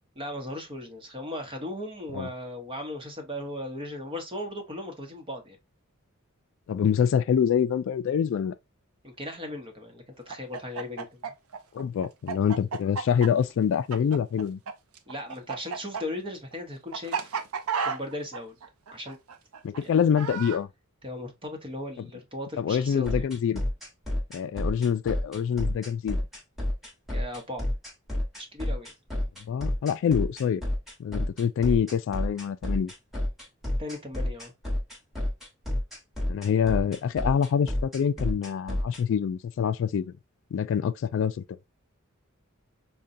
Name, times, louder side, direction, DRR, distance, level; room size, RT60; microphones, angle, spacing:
voice 1, 0.2-5.6 9.0-11.2 15.1-17.4 17.8-18.6 18.9-19.2 19.8-19.9 21.0-23.3 27.1-27.7 28.4-28.9 33.8-34.5, left 1 dB, 25° right, 0.9 m, -37 dB
voice 2, 6.7-8.5 11.7-14.6 19.6-20.7 22.6-23.6 24.3-26.2 29.4-30.6 31.0-32.9 36.3-40.1 40.5-41.4, left 7 dB, 65° left, 0.3 m, -26 dB
Chicken rooster, 10.3-14.7 15.0-20.6, right 6 dB, 85° right, 0.5 m, -33 dB
sound 1, 23.1-39.0, left 1 dB, ahead, 1.1 m, -29 dB
4.9 x 2.2 x 2.6 m
head